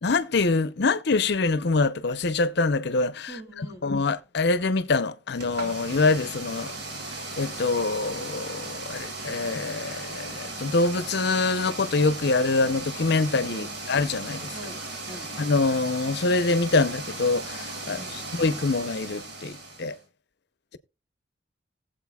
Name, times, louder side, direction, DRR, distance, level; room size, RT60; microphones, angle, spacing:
voice 1, 0.0-6.7 7.4-14.5 15.4-20.0, left 3 dB, 65° left, 0.7 m, -25 dB
voice 2, 3.3-3.9 13.5-13.7 14.5-15.3 17.9-18.3, right 1 dB, 25° right, 4.5 m, -43 dB
sound 1, 5.3-20.0, right 2 dB, 65° right, 2.2 m, -37 dB
19.0 x 7.8 x 2.3 m
head